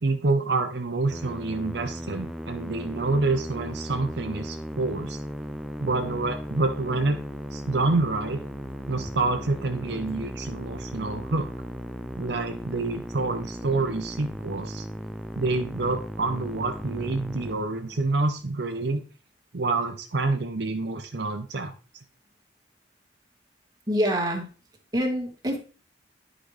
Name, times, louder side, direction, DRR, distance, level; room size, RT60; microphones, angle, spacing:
voice 1, 0.0-5.2 5.8-7.2 7.5-8.4 8.9-11.5 12.2-14.8 15.4-19.0 19.5-21.7, right 3 dB, 70° right, 5 dB, 0.7 m, -27 dB
Musical instrument, 1.1-18.2, equal, ahead, 0.4 m, -36 dB
voice 2, 23.9-24.5 24.9-25.6, equal, 20° right, 1 dB, 1.4 m, -25 dB
10.0 x 5.0 x 3.2 m, 0.36 s
head